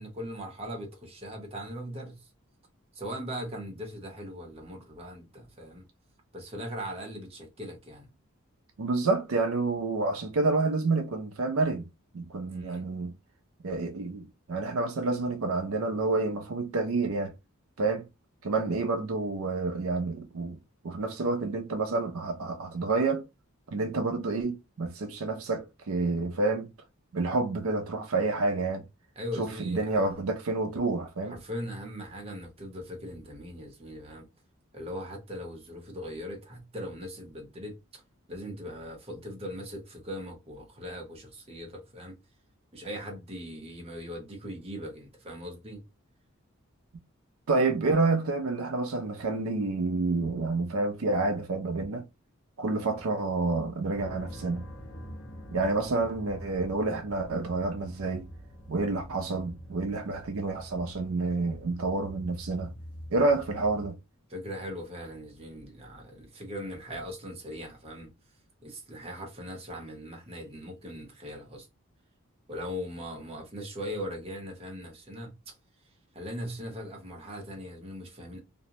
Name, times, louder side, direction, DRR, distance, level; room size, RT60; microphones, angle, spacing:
voice 1, 0.0-2.3 2.9-5.8 6.3-8.1 12.5-12.9 29.2-30.1 31.2-34.3 34.7-38.0 38.3-42.2 42.7-45.8 64.3-68.1 68.6-71.7 72.5-75.5 76.1-78.4, equal, 25° right, 0.8 m, -40 dB
voice 2, 8.8-11.9 12.1-13.1 13.6-17.3 17.8-18.1 18.4-20.6 20.8-23.2 23.7-26.7 27.1-28.8 29.4-31.4 47.5-52.0 52.6-54.6 55.5-58.2 58.7-62.7 63.1-63.9, right 3 dB, 75° right, 0.5 m, -29 dB
sound 1, 53.9-63.9, equal, 55° left, 1.0 m, -45 dB
2.5 x 2.1 x 2.8 m
head